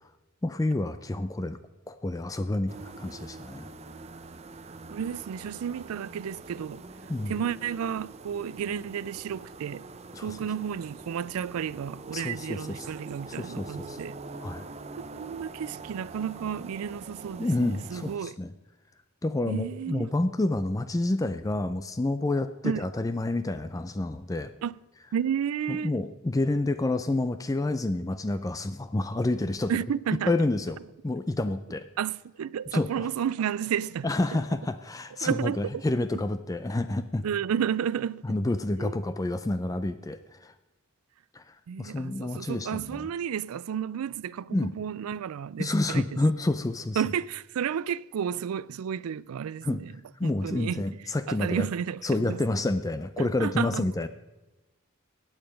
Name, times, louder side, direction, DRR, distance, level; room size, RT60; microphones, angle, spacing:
voice 1, 0.4-1.6 1.9-3.7 7.1-7.3 10.1-10.4 12.1-12.9 13.3-14.0 14.4-14.7 17.4-18.5 19.2-24.5 25.7-29.7 30.3-30.8 31.0-31.9 32.7-33.1 34.0-37.3 38.2-40.5 41.3-43.1 44.5-44.7 45.6-47.0 49.6-49.8 50.2-51.7 52.0-54.1, left 2 dB, 15° left, 0.4 m, -29 dB
sound 1, 2.7-18.2, right 3 dB, 30° right, 0.6 m, -44 dB
voice 2, 4.9-6.8 7.3-9.9 10.2-14.2 14.8-18.4 19.5-20.1 22.6-22.8 24.6-24.7 25.1-25.9 29.7-30.3 32.0-34.1 35.2-35.8 37.2-38.2 38.8-39.0 41.7-46.3 47.0-49.9 50.2-50.8 51.3-52.4 53.2-53.8, right 8 dB, 85° right, 0.4 m, -32 dB
14.5 x 8.9 x 5.2 m
head